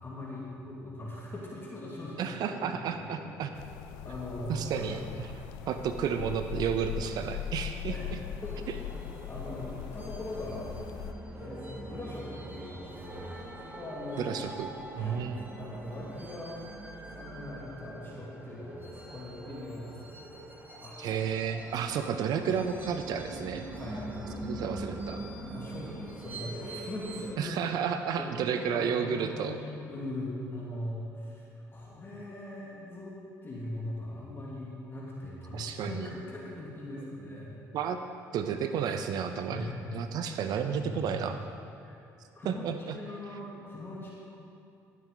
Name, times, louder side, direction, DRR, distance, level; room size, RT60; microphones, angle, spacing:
voice 1, 0.0-2.8 3.1-3.3 4.0-4.9 7.9-8.1 8.4-8.7 9.3-10.7 11.4-13.3 13.6-14.3 14.9-15.2 15.5-16.7 17.1-20.4 20.8-21.0 23.8-24.0 25.5-27.5 28.2-31.5 31.7-33.1 33.4-37.5 39.5-39.8 40.7-41.2 41.8-42.0 42.4-44.1, left 1 dB, 30° left, -5 dB, 2.5 m, -40 dB
voice 2, 2.2-3.5 4.5-5.3 5.7-7.9 14.2-14.7 15.0-15.5 21.0-23.6 24.4-25.2 27.4-29.6 35.5-36.1 37.7-38.0 38.3-41.4 42.4-43.0, right 7 dB, 65° right, 8 dB, 0.7 m, -32 dB
sound 1, 3.5-11.1, left 9 dB, 85° left, 0.5 m, -40 dB
sound 2, 8.4-27.3, right 1 dB, 25° right, 1.9 m, -43 dB
15.0 x 7.5 x 4.0 m, 2.7 s
supercardioid pair, 75°, 7 cm